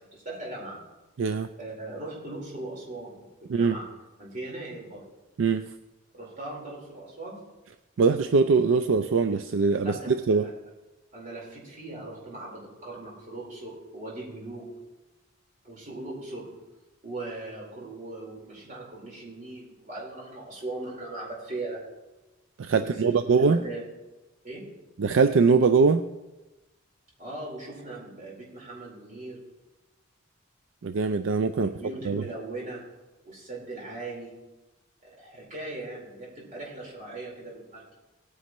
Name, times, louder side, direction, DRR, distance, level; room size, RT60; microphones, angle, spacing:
voice 1, 0.1-0.8 1.6-3.9 4.2-5.1 6.1-7.5 9.8-10.6 11.1-14.7 15.6-16.5 17.0-21.8 22.7-23.8 24.4-24.7 27.2-29.4 31.5-32.8 33.2-34.3 35.0-37.8, right 2 dB, 40° right, -4 dB, 4.3 m, -39 dB
voice 2, 1.2-1.5 3.5-3.8 5.4-5.7 8.0-10.5 22.6-23.6 25.0-26.0 30.8-31.7 32.0-32.2, right 4 dB, 70° right, 9 dB, 0.4 m, -22 dB
18.5 x 9.6 x 3.1 m, 1.1 s
head